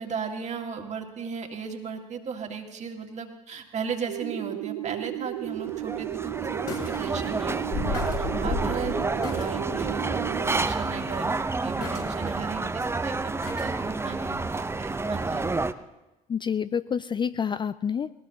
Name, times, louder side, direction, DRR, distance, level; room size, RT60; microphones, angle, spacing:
voice 1, 0.0-8.0 8.4-11.3 11.6-15.5, right 6 dB, 40° right, 3 dB, 2.0 m, -36 dB
sound 1, 4.1-10.6, right 17 dB, 75° right, 0.5 m, -34 dB
sound 2, 5.4-5.5 6.7-7.0 7.2-7.3 7.7-9.5 9.9-10.0 10.5-10.7 11.0-11.2 11.8-12.4 13.4-13.7 14.1-14.2, left 5 dB, 60° left, 4.7 m, -33 dB
sound 3, 5.4-15.7, right 3 dB, 15° right, 0.7 m, -29 dB
voice 2, 16.3-18.1, left 7 dB, 25° left, 14 dB, 0.4 m, -28 dB
20.0 x 18.5 x 2.9 m, 1.0 s
hypercardioid pair, 60°, 18 cm